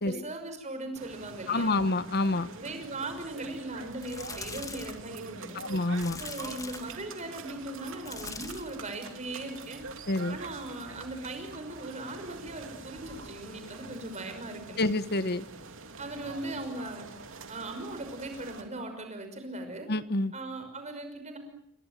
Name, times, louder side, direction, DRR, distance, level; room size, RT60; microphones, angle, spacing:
voice 1, 0.0-1.8 2.6-5.6 6.2-9.8 10.3-14.8 16.0-17.0 17.5-19.9 20.3-21.4, right 2 dB, 35° right, 7 dB, 5.9 m, -39 dB
sound 1, 1.0-18.6, right 4 dB, 65° right, 3.2 m, -45 dB
voice 2, 1.5-2.5 5.5-6.2 10.1-10.4 14.8-15.4 19.9-20.3, left 2 dB, 50° left, 13 dB, 1.3 m, -28 dB
sound 2, 3.9-5.1 5.9-7.0 8.0-8.8 9.2-9.6 11.1-11.2, left 4 dB, 15° left, 1.8 m, -42 dB
29.5 x 24.0 x 7.6 m, 0.73 s
head